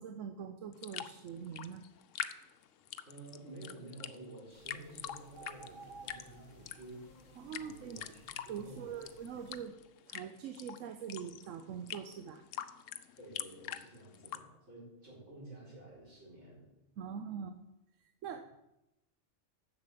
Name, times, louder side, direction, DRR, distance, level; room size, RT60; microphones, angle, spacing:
voice 1, 0.0-1.8 7.4-8.0 8.5-9.8 10.1-12.4 17.0-17.6 18.2-18.4, right 7 dB, 90° right, 7 dB, 1.0 m, -43 dB
sound 1, 0.7-14.4, left 11 dB, 85° left, 1.0 m, -45 dB
voice 2, 3.0-7.1 7.6-9.0 13.2-16.7, right 2 dB, 65° right, -6 dB, 4.7 m, -51 dB
sound 2, 4.5-9.6, right 3 dB, 40° right, 3.2 m, -56 dB
7.6 x 6.8 x 7.4 m, 0.92 s
omnidirectional pair, 1.3 m